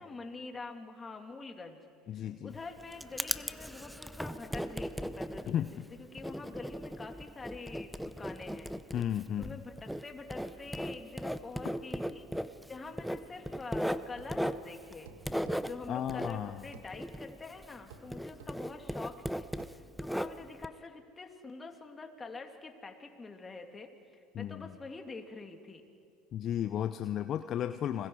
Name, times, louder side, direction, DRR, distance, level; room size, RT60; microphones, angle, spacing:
voice 1, 0.0-1.8 2.1-5.4 5.7-8.7 9.4-12.3 12.7-15.1 15.6-25.8, left 3 dB, 20° left, 4 dB, 2.6 m, -46 dB
voice 2, 2.1-2.6 5.5-5.8 8.9-9.6 15.9-16.6 24.3-24.7 26.3-28.1, left 10 dB, 45° left, 10 dB, 0.6 m, -34 dB
Writing, 2.5-17.8 18.1-20.7, equal, ahead, 0.7 m, -37 dB
sound 1, 14.2-14.4 15.1-15.6 16.7-16.9 17.9-18.1 18.4-18.6 19.6-19.8, right 7 dB, 85° right, 1.7 m, -52 dB
29.5 x 21.0 x 4.8 m, 2.3 s
hypercardioid pair, 90°, 0 cm